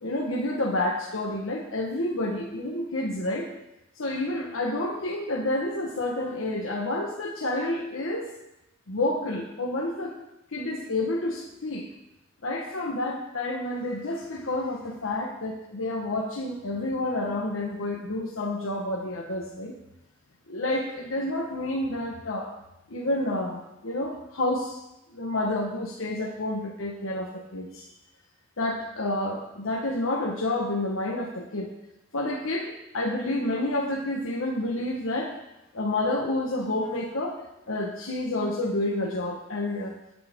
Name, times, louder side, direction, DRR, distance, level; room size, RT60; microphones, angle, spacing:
voice 1, 0.0-3.5 4.0-8.3 8.9-10.2 10.5-11.9 12.4-19.7 20.5-22.5 22.9-24.8 25.1-27.8 28.6-31.7 32.1-35.3 35.7-37.4 37.7-39.9, left 1 dB, 75° left, 0 dB, 1.3 m, -29 dB
18.5 x 7.6 x 3.7 m, 0.91 s
head